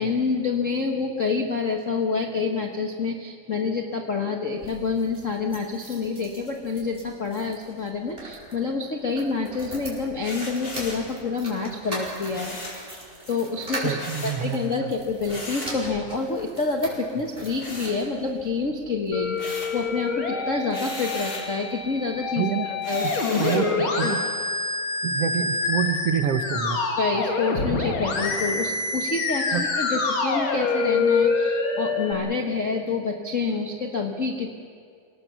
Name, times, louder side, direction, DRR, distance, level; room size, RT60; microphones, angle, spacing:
voice 1, 0.0-12.6 13.3-14.0 14.2-24.2 27.0-34.5, left 4 dB, 80° left, 3 dB, 0.6 m, -28 dB
sound 1, 4.5-18.5 19.1-19.9 20.2-20.3 20.5-20.6, right 1 dB, 15° right, 5.0 m, -41 dB
sound 2, 10.2-11.1 12.3-12.8 14.0-14.4 15.3-15.8 17.6-18.4 18.8-19.8 20.7-21.5 22.8-23.7, left 2 dB, 30° left, 3.8 m, -37 dB
voice 2, 13.8-14.9 22.4-22.7 23.0-23.1 23.4-24.2 25.0-26.8 29.5-29.6, right 8 dB, 65° right, 7 dB, 1.7 m, -27 dB
Musical instrument, 19.1-32.1, left 4 dB, 45° left, 2.4 m, -26 dB
26.0 x 18.5 x 7.0 m, 2.3 s
omnidirectional pair, 3.5 m